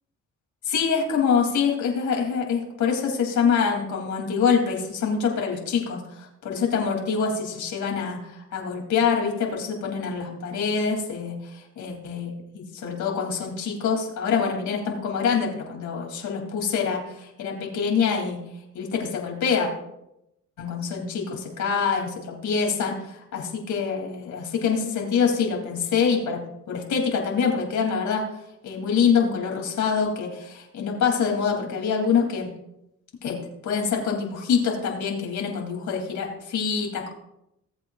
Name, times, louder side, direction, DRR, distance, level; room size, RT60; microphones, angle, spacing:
voice 1, 0.6-18.4 18.7-19.7 20.6-26.4 26.7-28.2 28.6-32.5 33.2-37.1, left 6 dB, 70° left, 1 dB, 3.0 m, -25 dB
18.0 x 8.1 x 2.4 m, 0.83 s
cardioid pair, 90°, 30 cm